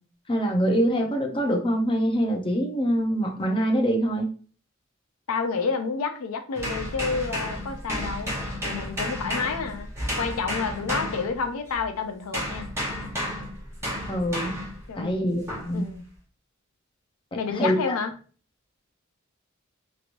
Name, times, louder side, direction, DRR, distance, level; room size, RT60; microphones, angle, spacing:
voice 1, 0.3-4.3 14.1-14.6 15.0-15.9 17.3-18.0, equal, 25° left, 2 dB, 0.6 m, -24 dB
voice 2, 5.3-8.3 8.6-9.9 10.2-12.7 14.9-15.2 15.7-16.0 17.3-18.1, left 5 dB, 90° left, 6 dB, 0.5 m, -29 dB
sound 1, 6.6-11.8 12.3-14.8 15.5-15.8, equal, 15° right, 1.0 m, -32 dB
3.0 x 2.9 x 2.5 m, 0.40 s
head